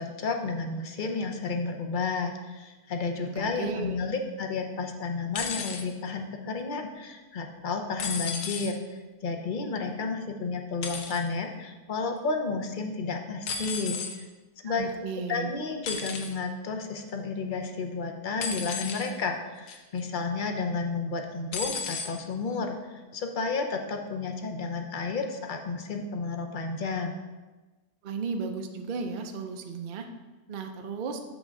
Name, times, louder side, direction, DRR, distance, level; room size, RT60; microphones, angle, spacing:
voice 1, 0.0-14.3 14.6-14.9 15.3-27.1, left 4 dB, 50° left, 4 dB, 0.6 m, -32 dB
voice 2, 3.2-4.0 14.6-15.5 28.0-30.0 30.5-31.2, right 5 dB, 50° right, 4 dB, 0.6 m, -34 dB
sound 1, 5.3-5.8 8.0-8.7 10.8-11.2 13.5-14.2 15.9-16.4 18.4-19.1 19.7-20.0 21.5-22.1 23.1-23.2, left 5 dB, 85° left, 1.4 m, -33 dB
8.2 x 3.6 x 6.4 m, 1.2 s
omnidirectional pair, 1.6 m